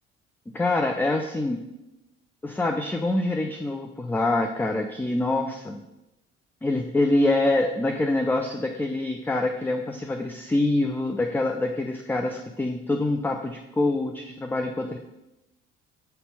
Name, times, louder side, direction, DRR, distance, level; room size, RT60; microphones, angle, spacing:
voice 1, 0.5-1.6 2.4-5.8 6.6-15.0, left 2 dB, 5° left, 4 dB, 0.3 m, -25 dB
5.3 x 4.1 x 5.5 m, 0.95 s
figure-of-eight pair, 50°, 37 cm